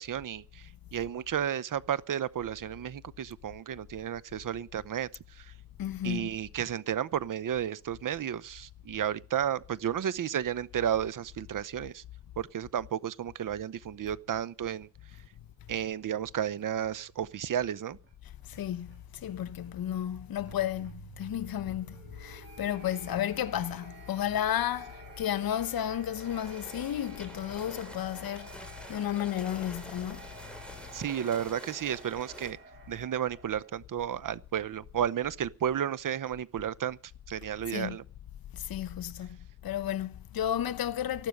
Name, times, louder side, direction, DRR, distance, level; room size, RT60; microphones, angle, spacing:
voice 1, 0.0-5.5 6.0-12.0 12.4-14.9 15.7-18.0 30.9-32.6 32.9-37.0 37.3-38.0, right 9 dB, 55° right, 0.8 m, -32 dB
voice 2, 5.8-6.3 18.5-30.3 37.7-38.0 38.5-41.3, left 11 dB, 65° left, 0.9 m, -33 dB
sound 1, 15.6-33.7, right 4 dB, 30° right, 7.9 m, -52 dB
sound 2, 26.2-32.5, equal, 5° left, 3.3 m, -48 dB
14.5 x 12.0 x 6.6 m
cardioid pair, 135°, 39 cm